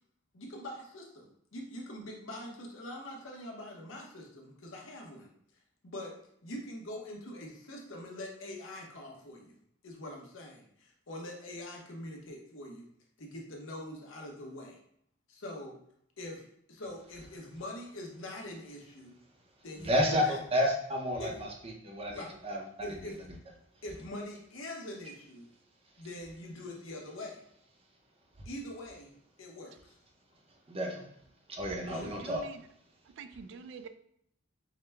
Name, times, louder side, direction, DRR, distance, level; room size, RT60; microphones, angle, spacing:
voice 1, 0.3-5.3 5.8-6.2 6.4-9.6 9.8-12.9 13.2-14.8 15.3-15.8 16.2-16.4 16.7-19.2 19.6-20.4 21.2-21.3 22.1-22.3 22.8-23.2 23.8-25.5 26.0-27.4 28.4-29.1 29.4-30.0 31.9-32.3, left 1 dB, 75° left, 0 dB, 0.9 m, -43 dB
voice 2, 19.8-20.2 20.5-23.0 30.7-31.0 31.5-32.4, equal, 30° right, 1 dB, 0.7 m, -31 dB
voice 3, 32.0-32.6 33.1-33.9, right 5 dB, 65° right, 10 dB, 0.3 m, -46 dB
4.8 x 2.2 x 3.3 m, 0.70 s
head